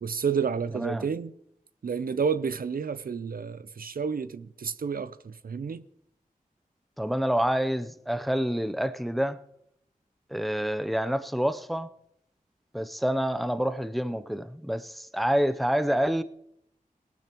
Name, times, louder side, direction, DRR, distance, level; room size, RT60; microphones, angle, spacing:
voice 1, 0.0-1.3 1.8-5.8, right 6 dB, 75° right, 0.5 m, -30 dB
voice 2, 0.7-1.1 7.0-9.4 10.3-11.9 12.7-16.2, equal, ahead, 0.6 m, -27 dB
19.0 x 12.0 x 3.0 m
wide cardioid pair, 65°, 15 cm